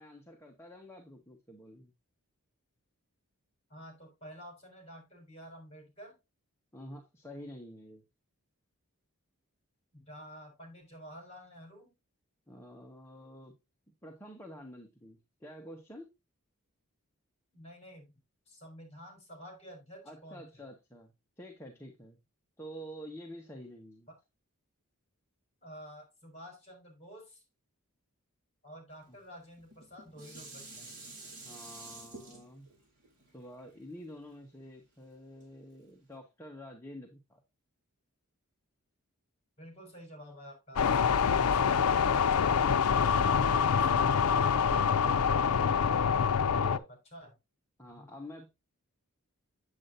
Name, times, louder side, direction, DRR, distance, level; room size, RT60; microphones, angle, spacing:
voice 1, 0.0-1.9 6.7-8.0 12.5-13.5 14.0-16.1 20.0-22.2 22.6-24.1 31.4-32.7 33.3-37.4 45.9-46.9 47.8-48.5, equal, 10° left, 1.2 m, -48 dB
voice 2, 3.7-6.1 9.9-11.9 17.5-18.1 18.5-20.6 24.1-24.2 25.6-27.4 28.6-31.0 39.6-45.2 46.1-46.8 47.1-47.3 47.9-48.1, equal, 30° left, 4.9 m, -50 dB
Dishes pots and pans, 29.6-34.9 35.4-35.5, right 2 dB, 35° right, 4.9 m, -49 dB
sound 1, 40.8-46.8, left 6 dB, 85° left, 0.5 m, -26 dB
8.5 x 7.9 x 2.7 m
head